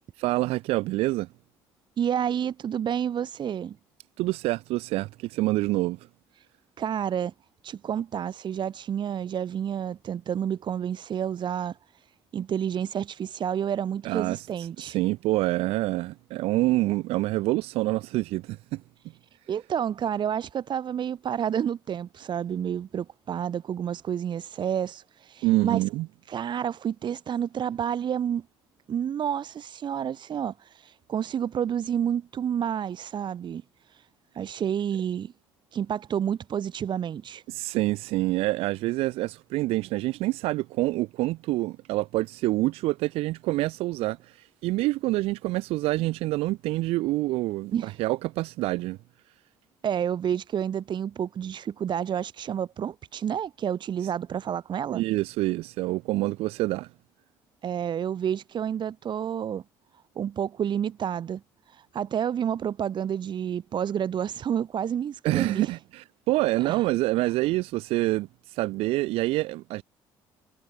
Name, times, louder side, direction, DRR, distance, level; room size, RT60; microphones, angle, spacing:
voice 1, 0.2-1.3 4.2-6.0 14.0-18.8 25.4-26.1 37.5-49.0 54.9-56.9 65.2-69.8, right 18 dB, 75° right, 0.6 m, -27 dB
voice 2, 2.0-3.8 6.4-6.5 6.8-7.3 7.6-12.1 12.3-15.0 19.5-25.8 26.3-28.4 28.9-33.6 33.9-34.1 34.3-35.3 35.7-37.4 47.7-48.0 49.8-55.0 57.6-59.6 60.2-61.4 61.7-65.8 66.6-66.9, right 9 dB, 50° right, 1.1 m, -29 dB
supercardioid pair, 75°, 10 cm